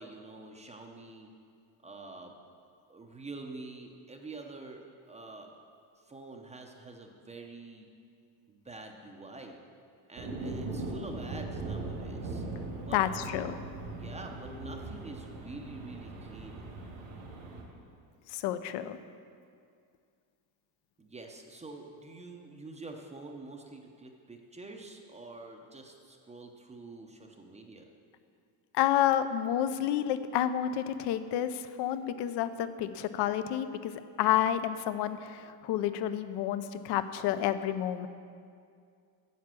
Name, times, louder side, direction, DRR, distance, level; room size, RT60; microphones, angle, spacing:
voice 1, 0.0-1.3 1.8-2.3 2.9-4.8 5.1-5.5 6.0-7.9 8.5-9.6 10.1-12.4 12.8-13.0 13.9-16.7 21.0-27.9, right 3 dB, 15° right, 2 dB, 0.6 m, -47 dB
sound 1, 10.2-17.6, right 2 dB, 85° right, 2.6 m, -39 dB
voice 2, 12.9-13.6 18.3-19.0 28.7-38.1, left 11 dB, 60° left, 12 dB, 0.7 m, -30 dB
9.4 x 7.2 x 7.5 m, 2.3 s
cardioid pair, 150°, 46 cm